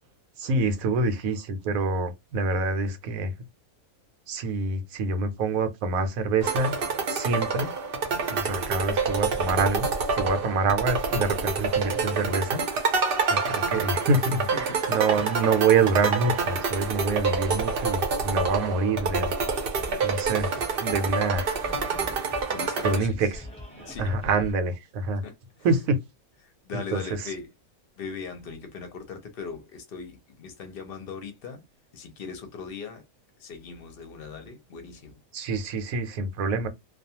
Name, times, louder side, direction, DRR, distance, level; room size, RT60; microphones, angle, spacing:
voice 1, 0.4-3.3 4.3-6.7 7.1-7.7 8.3-12.6 13.3-19.3 20.0-21.6 22.8-23.3 23.8-25.2 25.6-26.0 26.7-27.0 35.3-36.7, right 3 dB, 75° right, 1.1 m, -26 dB
sound 1, 6.4-23.0, right 4 dB, 55° right, 0.7 m, -27 dB
voice 2, 14.5-15.0 19.9-20.0 22.5-23.3 23.9-24.2 25.2-25.3 26.4-27.5 28.0-31.6 31.9-33.0 33.4-35.2, left 5 dB, 55° left, 0.7 m, -39 dB
sound 2, 19.5-24.5, left 1 dB, 5° left, 0.9 m, -42 dB
2.3 x 2.3 x 2.8 m
omnidirectional pair, 1.5 m